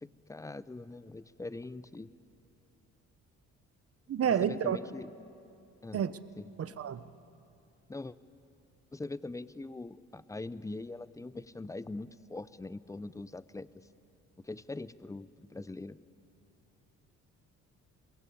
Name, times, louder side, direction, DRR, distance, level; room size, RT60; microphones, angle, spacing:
voice 1, 0.0-2.1 4.2-5.1 5.8-6.0 6.4-6.5 7.9-8.2 8.9-13.7 14.4-16.0, left 2 dB, 10° left, 16 dB, 0.7 m, -42 dB
voice 2, 4.1-4.8 5.9-6.1 6.6-7.0, right 9 dB, 50° right, 14 dB, 1.0 m, -29 dB
22.5 x 21.0 x 8.5 m, 2.6 s
cardioid pair, 90°, 30 cm